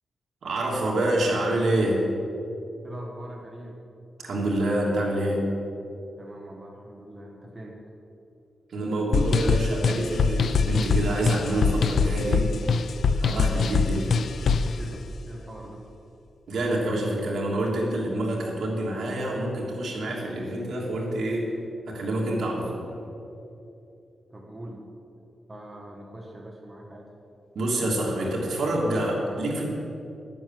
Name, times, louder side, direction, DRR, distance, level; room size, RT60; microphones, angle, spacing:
voice 1, 0.4-2.1 4.2-5.5 8.7-12.5 13.1-14.2 16.5-21.5 21.9-22.9 27.5-29.6, right 1 dB, 70° right, -3 dB, 3.1 m, -27 dB
voice 2, 2.8-3.8 6.2-7.8 14.8-15.9 24.3-24.9 25.5-27.1, right 1 dB, 15° right, -1 dB, 1.1 m, -42 dB
sound 1, 9.1-14.8, left 5 dB, 65° left, 0.4 m, -23 dB
11.5 x 9.3 x 7.8 m, 2.8 s
wide cardioid pair, 175°, 0 cm